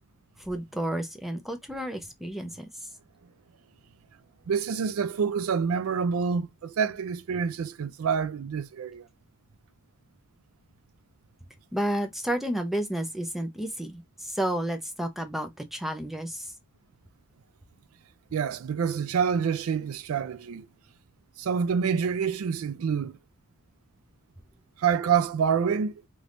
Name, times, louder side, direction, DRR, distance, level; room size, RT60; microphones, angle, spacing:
voice 1, 0.4-2.7 11.7-16.5, right 1 dB, ahead, 0.5 m, -31 dB
voice 2, 4.5-9.1 18.3-20.7 21.4-23.2 24.8-26.0, right 6 dB, 70° right, 0.4 m, -27 dB
3.3 x 3.2 x 2.5 m
head